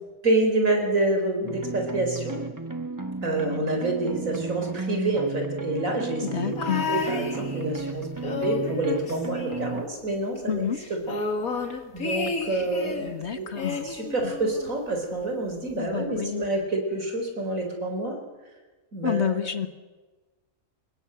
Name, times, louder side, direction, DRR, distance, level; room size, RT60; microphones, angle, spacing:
voice 1, 0.2-2.4 3.2-6.5 6.9-11.2 11.9-13.5 13.8-18.1 18.9-19.6, right 2 dB, 70° right, 3 dB, 4.8 m, -27 dB
sound 1, 1.4-9.8, right 3 dB, 15° right, 1.3 m, -34 dB
voice 2, 6.3-6.9 10.5-10.8 13.0-13.8 15.8-16.4 19.0-19.7, left 8 dB, 50° left, 10 dB, 1.5 m, -28 dB
sound 2, 6.6-7.9 8.2-10.1 10.4-10.5 10.7-13.1 13.6-14.8 15.7-15.8, left 4 dB, 80° left, 2.9 m, -32 dB
25.0 x 20.5 x 8.0 m, 1.3 s
omnidirectional pair, 1.5 m